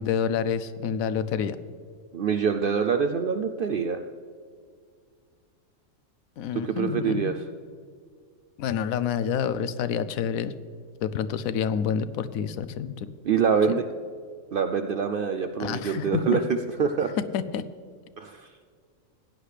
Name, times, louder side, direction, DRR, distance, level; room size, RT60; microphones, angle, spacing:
voice 1, 0.0-1.6 6.4-7.3 8.6-10.5 11.0-13.1 13.7-13.8 15.6-16.4 17.3-17.6, left 7 dB, 90° left, 13 dB, 1.0 m, -28 dB
voice 2, 2.1-4.0 6.5-7.4 13.2-13.8 14.5-17.1 18.2-18.5, right 6 dB, 65° right, 8 dB, 0.5 m, -25 dB
16.5 x 9.8 x 3.3 m, 2.1 s
omnidirectional pair, 1.4 m